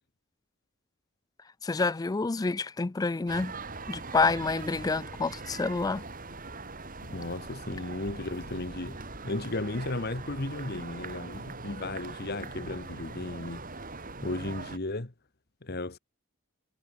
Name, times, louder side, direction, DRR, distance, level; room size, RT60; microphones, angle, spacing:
voice 1, 1.6-3.5 3.9-6.0, left 3 dB, 15° left, 0.3 m, -28 dB
sound 1, 3.3-14.8, right 3 dB, 40° right, 4.3 m, -41 dB
voice 2, 7.0-9.0 9.2-13.6 14.2-15.1 15.6-16.0, left 2 dB, 45° left, 1.4 m, -35 dB
head